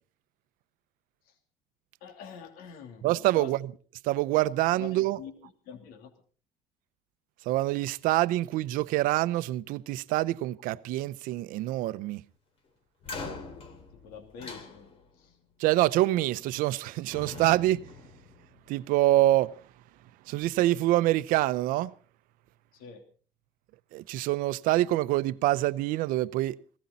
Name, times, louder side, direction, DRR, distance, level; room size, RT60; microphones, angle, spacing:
voice 1, 2.0-3.1 3.3-3.5 4.8-6.1 13.9-15.4 22.7-23.0, left 7 dB, 75° left, 2.9 m, -46 dB
voice 2, 3.0-3.7 4.0-5.2 7.5-12.2 15.6-17.9 18.7-19.6 20.3-21.9 23.9-26.6, right 16 dB, 70° right, 0.7 m, -26 dB
sound 1, 13.0-15.3 16.4-16.8 17.1-18.9, left 3 dB, 40° left, 2.8 m, -43 dB
19.5 x 17.0 x 4.1 m
cardioid pair, 165°, 15 cm